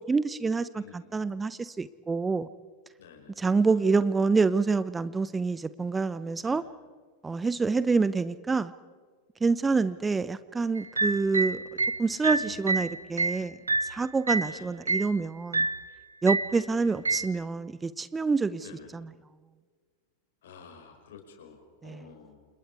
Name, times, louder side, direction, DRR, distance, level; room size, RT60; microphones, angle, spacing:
voice 1, 0.1-2.5 3.4-6.6 7.2-8.7 9.4-11.6 12.0-13.6 13.9-15.7 16.2-18.7 18.9-19.1 21.8-22.0, right 4 dB, 15° right, 16 dB, 0.8 m, -27 dB
voice 2, 0.7-1.1 3.0-3.9 6.4-6.7 7.7-8.1 9.7-10.1 12.3-13.0 14.4-14.8 16.7-17.2 18.6-19.0 20.4-22.5, left 6 dB, 60° left, 4 dB, 5.4 m, -51 dB
sound 1, 10.8-14.5 14.9-15.2 15.5-15.9 16.3-16.6 17.0-17.3, right 3 dB, 80° right, 0.8 m, -28 dB
29.5 x 28.0 x 4.8 m, 1.5 s
figure-of-eight pair, 90°, 0 cm